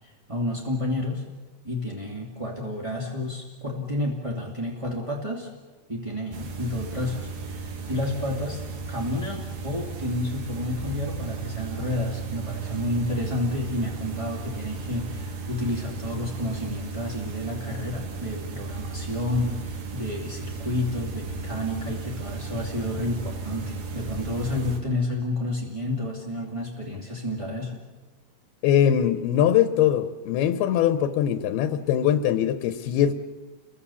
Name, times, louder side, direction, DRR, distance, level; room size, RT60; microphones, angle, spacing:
voice 1, 0.0-1.2 1.6-5.5 5.9-8.6 8.9-27.8, left 1 dB, 15° right, -3 dB, 1.3 m, -30 dB
sound 1, 6.3-24.8, right 4 dB, 70° right, 4.0 m, -35 dB
voice 2, 28.6-33.1, left 10 dB, 80° left, 10 dB, 2.8 m, -22 dB
30.0 x 22.5 x 7.0 m, 1.3 s
omnidirectional pair, 4.5 m